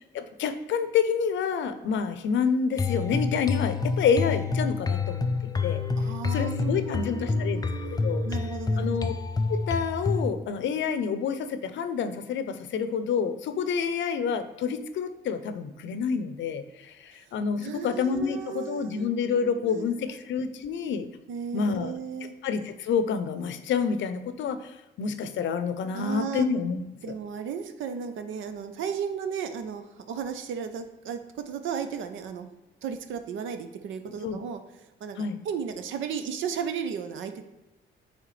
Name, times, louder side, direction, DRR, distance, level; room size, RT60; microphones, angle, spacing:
voice 1, 0.1-5.8 6.3-8.2 8.8-9.1 9.5-21.1 21.5-21.9 22.4-26.8 34.2-34.4 35.2-35.4, left 6 dB, 70° left, 10 dB, 0.6 m, -28 dB
sound 1, 2.8-10.3, left 4 dB, 20° left, 0.5 m, -28 dB
voice 2, 6.0-9.0 17.6-20.2 21.3-22.3 25.9-26.5 27.0-31.2 31.5-32.5 32.8-34.6 35.0-35.2 35.4-37.4, right 7 dB, 75° right, 8 dB, 0.7 m, -35 dB
9.0 x 3.5 x 3.2 m, 1.0 s
cardioid pair, 90°, 20 cm